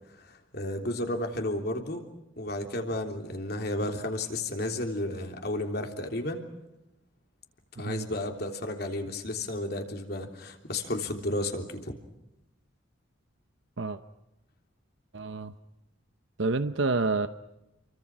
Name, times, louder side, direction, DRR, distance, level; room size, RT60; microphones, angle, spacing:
voice 1, 0.3-2.0 2.4-6.4 7.8-11.9, left 1 dB, 50° left, 4 dB, 3.3 m, -32 dB
voice 2, 15.1-15.5 16.4-17.3, right 3 dB, 70° right, 10 dB, 0.9 m, -28 dB
29.5 x 24.0 x 6.1 m, 0.92 s
head